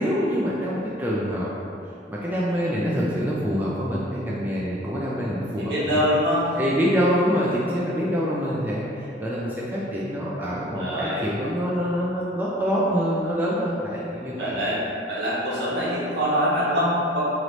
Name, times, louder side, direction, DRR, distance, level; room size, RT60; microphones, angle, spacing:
voice 1, 0.0-1.5 2.1-6.0 6.6-14.5, equal, 10° right, -7 dB, 0.3 m, -25 dB
voice 2, 5.6-6.6 10.8-11.2 14.4-14.8 15.1-17.2, equal, 65° right, -8 dB, 1.1 m, -24 dB
3.1 x 3.0 x 3.9 m, 2.6 s
head